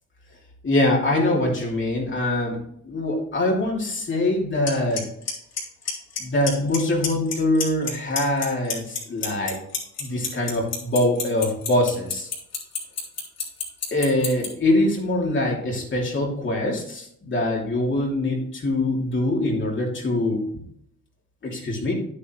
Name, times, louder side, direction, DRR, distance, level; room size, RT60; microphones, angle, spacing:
voice 1, 0.6-2.6 2.8-5.1 6.2-9.6 10.0-12.3 13.9-20.4 21.4-21.9, left 1 dB, 40° left, -2 dB, 2.8 m, -23 dB
Clock, 4.7-4.8 5.0-5.3 5.6-6.2 6.5-6.8 7.0-7.9 8.2-14.5, left 7 dB, 60° left, 3.5 m, -26 dB
9.7 x 8.7 x 3.1 m, 0.69 s
cardioid pair, 90°, 30 cm